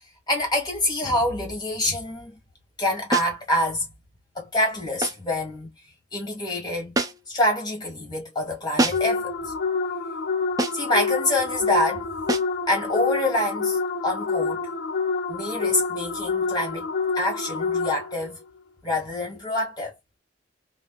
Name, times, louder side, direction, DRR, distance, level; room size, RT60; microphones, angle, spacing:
voice 1, 0.3-2.4 2.8-3.9 4.3-5.7 6.1-7.0 7.3-9.5 10.7-12.1 12.7-14.7 15.3-16.9 17.1-18.4 18.8-19.9, left 1 dB, 25° left, 1.4 m, -26 dB
sound 1, 3.1-3.4 5.0-5.3 6.9-7.4 8.8-9.2 10.6-10.9 12.3-12.6, right 2 dB, 20° right, 0.4 m, -26 dB
sound 2, 8.9-18.3, left 4 dB, 75° left, 0.5 m, -27 dB
2.5 x 2.4 x 2.3 m
head